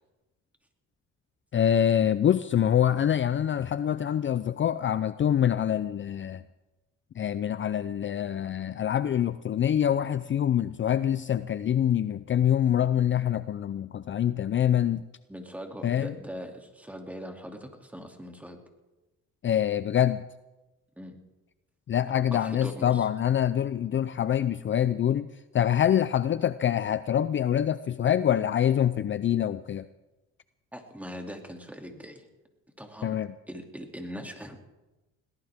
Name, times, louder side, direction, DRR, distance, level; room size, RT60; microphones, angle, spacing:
voice 1, 1.5-6.4 7.2-15.0 15.8-16.1 19.4-20.2 21.9-25.3 25.5-29.9 33.0-33.3, left 10 dB, 40° left, 14 dB, 0.5 m, -25 dB
voice 2, 15.3-18.6 21.0-21.2 22.3-23.1 30.7-32.3 32.8-33.2 33.5-34.6, equal, 5° right, 3 dB, 2.7 m, -41 dB
21.5 x 18.0 x 3.6 m, 1.1 s
cardioid pair, 90°, 30 cm